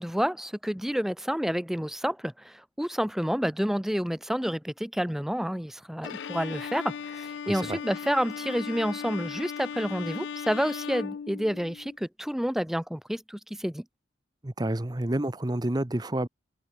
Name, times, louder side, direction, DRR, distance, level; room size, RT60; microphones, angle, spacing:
voice 1, 0.0-13.8, equal, ahead, 0.5 m, -29 dB
Bowed string instrument, 6.0-12.0, left 7 dB, 65° left, 0.3 m, -37 dB
voice 2, 7.5-7.8 14.4-16.3, right 1 dB, 20° right, 0.9 m, -29 dB
head